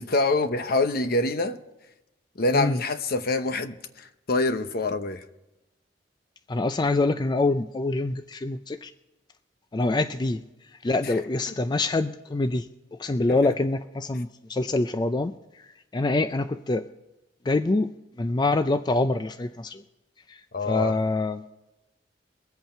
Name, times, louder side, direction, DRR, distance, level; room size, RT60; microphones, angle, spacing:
voice 1, 0.0-1.6 2.4-5.2 11.0-11.1 11.6-11.7 13.3-13.5 20.5-21.0, left 2 dB, 55° left, 0.9 m, -26 dB
voice 2, 6.5-8.9 9.7-10.4 10.8-15.3 15.9-16.8 17.5-17.9 18.2-19.8 20.3-20.4 20.7-21.4, left 2 dB, 25° left, 0.4 m, -25 dB
23.0 x 8.2 x 4.4 m
head